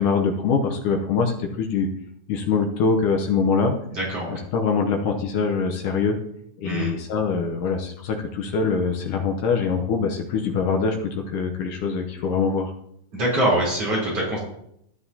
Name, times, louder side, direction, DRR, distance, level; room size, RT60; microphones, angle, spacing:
voice 1, 0.0-1.9 2.3-3.7 4.3-6.2 6.6-12.7, left 5 dB, 75° left, 3 dB, 1.9 m, -23 dB
voice 2, 3.9-4.4 6.6-6.9 13.1-14.4, right 1 dB, 35° right, -5 dB, 4.5 m, -24 dB
13.0 x 11.0 x 2.8 m, 0.74 s
omnidirectional pair, 4.7 m